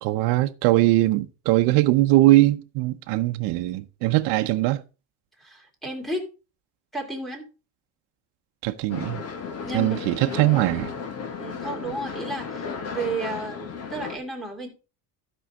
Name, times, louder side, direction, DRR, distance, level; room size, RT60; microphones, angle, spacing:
voice 1, 0.0-4.8 8.6-9.2 9.7-10.9, right 17 dB, 75° right, 0.8 m, -21 dB
voice 2, 5.4-6.3 6.9-7.5 9.6-10.0 11.4-14.7, right 2 dB, ahead, 2.7 m, -33 dB
sound 1, 8.9-14.2, left 5 dB, 35° left, 1.6 m, -34 dB
15.5 x 5.5 x 3.6 m
cardioid pair, 170°, 40 cm